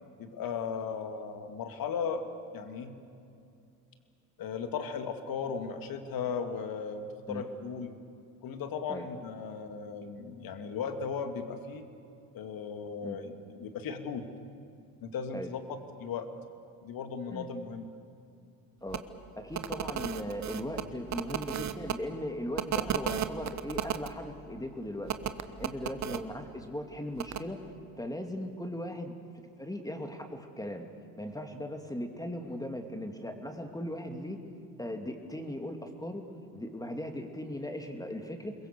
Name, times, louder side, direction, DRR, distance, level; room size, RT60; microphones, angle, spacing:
voice 1, 0.2-2.2 2.5-2.9 4.4-7.9 8.4-11.9 12.3-14.3 15.0-16.3 16.8-17.9, left 6 dB, 50° left, 7 dB, 2.4 m, -36 dB
sound 1, 18.9-19.0 19.5-21.9 22.6-24.1 25.1-26.2 27.2-27.4, right 9 dB, 40° right, 1.3 m, -33 dB
voice 2, 19.4-25.1 25.6-27.6 28.0-30.9 31.2-34.4 34.8-36.3 36.5-38.5, left 1 dB, 10° left, 5 dB, 2.7 m, -38 dB
28.5 x 22.0 x 6.9 m, 2.6 s
hypercardioid pair, 65°, 45 cm